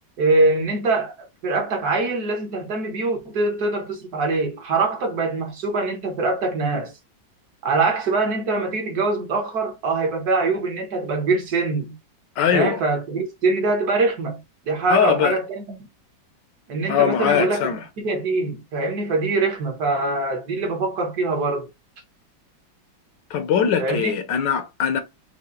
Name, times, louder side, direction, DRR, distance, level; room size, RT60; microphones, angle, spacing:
voice 1, 0.2-1.1 1.4-6.9 7.6-11.9 12.5-14.4 14.7-15.6 16.7-17.7 18.0-21.7 23.8-24.1, right 3 dB, 55° right, 1.6 m, -23 dB
voice 2, 12.4-12.8 14.9-15.4 16.9-17.8 23.3-25.0, left 8 dB, 70° left, 1.3 m, -21 dB
5.6 x 2.4 x 3.7 m
omnidirectional pair, 2.2 m